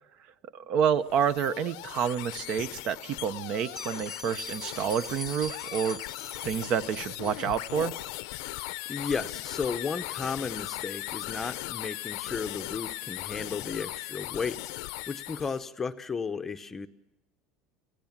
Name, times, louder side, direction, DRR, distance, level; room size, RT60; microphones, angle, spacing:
voice 1, 0.5-6.0 6.4-7.9, right 8 dB, 40° right, 15 dB, 0.8 m, -29 dB
sound 1, 1.0-15.6, left 20 dB, 75° left, 0.7 m, -38 dB
Bell, 3.6-8.2, left 2 dB, 10° right, 1.3 m, -43 dB
voice 2, 8.9-16.9, left 5 dB, 15° left, 9 dB, 0.8 m, -34 dB
29.5 x 17.0 x 7.3 m, 0.98 s
cardioid pair, 165°, 2 cm